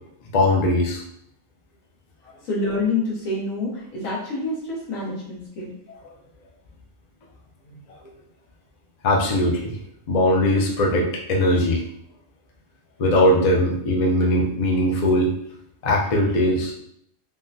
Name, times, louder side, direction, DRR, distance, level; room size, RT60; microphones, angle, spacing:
voice 1, 0.3-1.0 7.7-7.8 9.0-9.8 10.1-11.8 13.0-15.4 15.8-16.7, left 1 dB, 55° left, 0 dB, 0.4 m, -20 dB
voice 2, 2.4-5.8, left 2 dB, 90° left, -5 dB, 1.4 m, -27 dB
3.6 x 2.1 x 2.6 m, 0.71 s
omnidirectional pair, 1.4 m